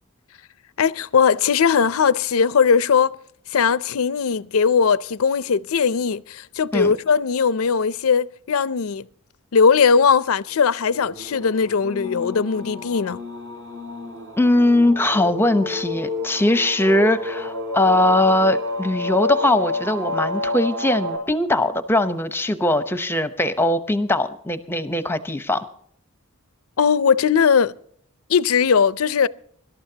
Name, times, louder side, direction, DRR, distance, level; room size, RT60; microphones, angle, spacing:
voice 1, 0.8-3.2 3.5-9.0 9.5-13.2 26.8-27.7 28.3-29.3, left 6 dB, 75° left, 0.5 m, -19 dB
sound 1, 10.9-21.2, left 2 dB, 60° right, 4.5 m, -29 dB
voice 2, 14.4-25.6, left 1 dB, 10° left, 0.8 m, -20 dB
25.0 x 12.5 x 2.8 m
head